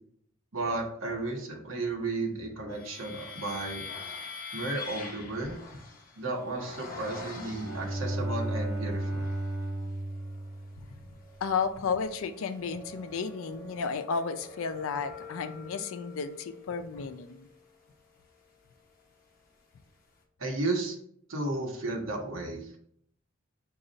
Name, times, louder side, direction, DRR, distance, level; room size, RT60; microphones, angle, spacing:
voice 1, 0.5-3.8 4.5-5.6 6.2-9.3 20.4-21.0 21.3-22.7, right 2 dB, 80° right, 1 dB, 0.9 m, -33 dB
sound 1, 2.7-8.2 8.8-9.6 10.0-19.2, left 4 dB, 45° left, 0.7 m, -45 dB
Bowed string instrument, 7.3-11.2, right 1 dB, ahead, 1.1 m, -34 dB
voice 2, 11.4-17.5, left 5 dB, 85° left, 8 dB, 0.4 m, -33 dB
5.2 x 2.3 x 3.8 m, 0.68 s
head